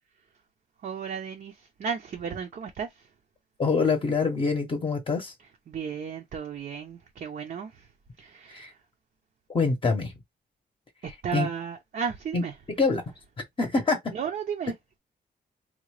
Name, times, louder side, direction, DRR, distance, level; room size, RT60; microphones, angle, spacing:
voice 1, 0.8-3.1 5.7-7.9 8.2-8.8 11.2-12.5 14.1-14.7, right 7 dB, 50° right, 0.5 m, -34 dB
voice 2, 3.6-5.3 8.5-8.7 9.5-10.1 11.3-11.5 12.3-12.4 12.8-13.0 13.6-14.0, left 4 dB, 30° left, 0.7 m, -25 dB
3.7 x 2.2 x 3.1 m
wide cardioid pair, 160°, 18 cm